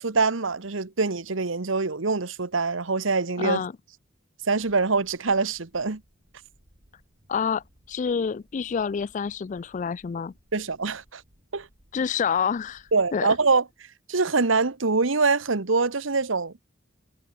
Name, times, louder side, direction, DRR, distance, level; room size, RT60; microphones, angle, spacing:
voice 1, 0.0-3.6 4.5-6.0 10.5-11.2 11.5-11.7 12.9-13.6 14.1-16.5, right 4 dB, 85° right, 1.3 m, -24 dB
voice 2, 3.4-3.7 7.3-10.3 11.9-12.8 13.1-13.3, left 6 dB, 40° left, 0.3 m, -27 dB
sound 1, 4.5-13.2, equal, 50° right, 7.5 m, -61 dB
head